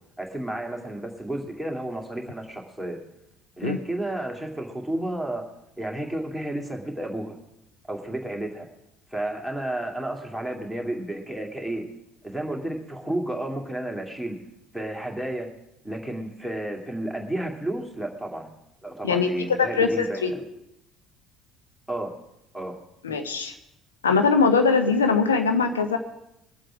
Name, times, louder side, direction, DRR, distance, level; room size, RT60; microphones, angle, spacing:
voice 1, 0.2-3.0 3.6-5.4 5.8-7.3 7.9-8.7 9.1-11.8 12.2-14.4 14.7-15.5 15.8-18.5 18.8-20.4 21.9-22.1 22.5-22.8, right 1 dB, 5° left, 2 dB, 2.4 m, -31 dB
voice 2, 19.6-20.3 23.0-23.5 24.0-26.0, left 5 dB, 75° left, 7 dB, 1.0 m, -21 dB
22.0 x 7.7 x 4.9 m, 0.84 s
figure-of-eight pair, 55°, 0 cm